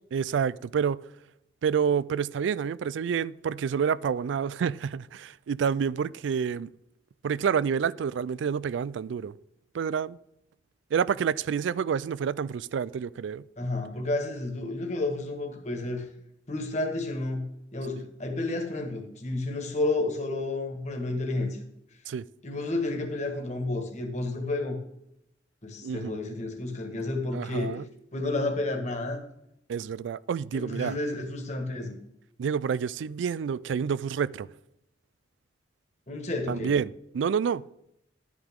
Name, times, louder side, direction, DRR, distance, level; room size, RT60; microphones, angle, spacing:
voice 1, 0.1-1.0 1.6-6.7 7.2-9.3 9.7-10.2 10.9-13.4 22.1-22.2 25.8-26.1 27.3-27.8 29.7-31.0 32.4-34.5 36.5-37.8, right 7 dB, 90° right, 0.3 m, -28 dB
voice 2, 13.6-16.1 16.5-17.4 17.7-21.6 22.4-24.8 25.6-27.8 28.1-29.2 30.5-32.0 36.1-36.7, left 2 dB, 40° left, 1.7 m, -31 dB
11.5 x 8.9 x 3.7 m
head